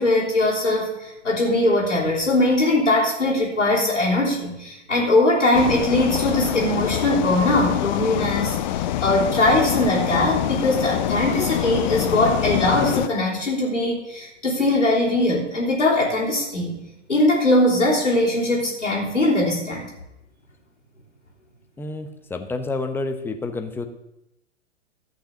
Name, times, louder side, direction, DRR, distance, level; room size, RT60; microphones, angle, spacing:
voice 1, 0.0-16.8 17.1-19.9, left 1 dB, 85° left, -5 dB, 3.7 m, -21 dB
sound 1, 5.5-13.1, left 12 dB, 40° left, 0.7 m, -25 dB
voice 2, 21.8-23.9, left 3 dB, 5° left, 5 dB, 0.9 m, -29 dB
13.5 x 5.8 x 7.1 m, 0.88 s
figure-of-eight pair, 105°, 36 cm